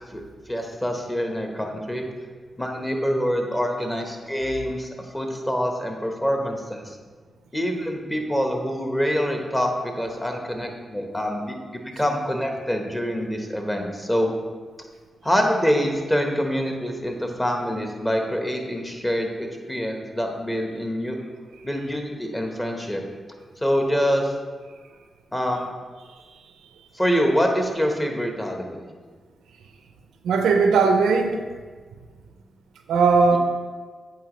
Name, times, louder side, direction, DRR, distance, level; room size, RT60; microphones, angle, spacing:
voice 1, 0.5-2.0 2.6-7.0 7.5-14.3 15.2-21.2 21.6-23.0 23.6-24.3 25.3-25.7 26.9-28.9 33.3-33.4, equal, 20° left, 3 dB, 1.1 m, -25 dB
voice 2, 30.2-31.4 32.9-33.4, right 4 dB, 85° right, 5 dB, 0.4 m, -18 dB
8.3 x 3.8 x 3.1 m, 1.5 s
supercardioid pair, 50°, 0 cm